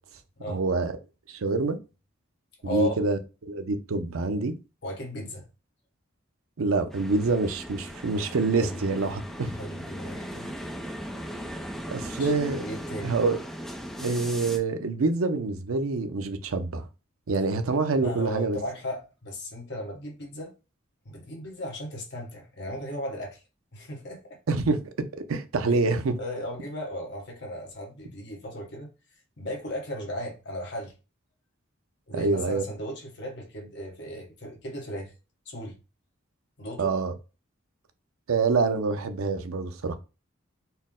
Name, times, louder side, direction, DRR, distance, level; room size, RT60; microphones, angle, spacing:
voice 1, 0.5-1.0 1.3-1.8 2.6-4.5 6.6-9.5 11.9-12.6 13.0-13.4 14.0-16.8 17.3-18.6 24.5-24.8 25.3-26.2 32.1-32.6 36.8-37.1 38.3-39.9, right 3 dB, 85° right, 0.6 m, -26 dB
voice 2, 2.6-3.0 4.8-5.4 8.6-9.2 9.6-10.6 12.2-12.3 12.6-13.2 18.0-20.5 21.0-23.4 23.7-24.4 26.2-28.9 29.4-30.9 32.1-35.1 35.5-35.8 36.6-36.9, equal, 55° left, 1.1 m, -36 dB
sound 1, 6.9-14.6, equal, ahead, 0.4 m, -38 dB
4.3 x 2.1 x 3.6 m
head